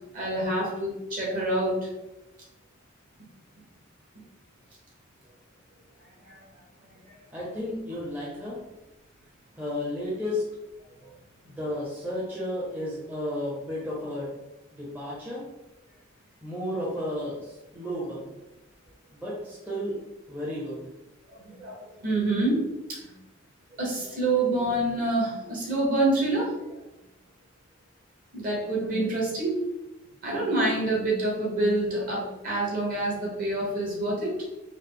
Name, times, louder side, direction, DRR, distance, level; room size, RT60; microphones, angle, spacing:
voice 1, 0.1-1.8 6.2-6.4 11.0-11.1 21.4-22.6 22.9-23.1 23.8-26.5 28.3-29.6 30.2-34.5, right 2 dB, 45° right, -4 dB, 1.2 m, -27 dB
voice 2, 7.3-8.6 9.6-10.4 11.4-14.4 14.7-15.4 16.4-18.3 19.1-20.0 20.3-20.9, left 1 dB, 10° right, -7 dB, 0.7 m, -33 dB
3.8 x 2.0 x 3.6 m, 0.97 s
head